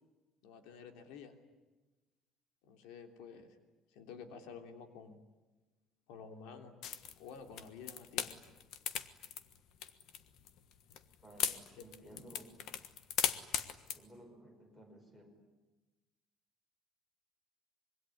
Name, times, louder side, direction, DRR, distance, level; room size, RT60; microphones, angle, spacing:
voice 1, 0.4-1.3 2.6-3.6 3.9-5.2 6.1-6.8 7.2-8.4 11.7-12.3, left 6 dB, 90° left, 6 dB, 3.2 m, -51 dB
sound 1, 6.8-14.0, left 9 dB, 50° left, 1.4 m, -38 dB
voice 2, 11.2-12.5 13.9-15.3, equal, 10° left, 5 dB, 5.2 m, -56 dB
25.5 x 23.0 x 9.9 m, 1.2 s
cardioid pair, 180°, 0 cm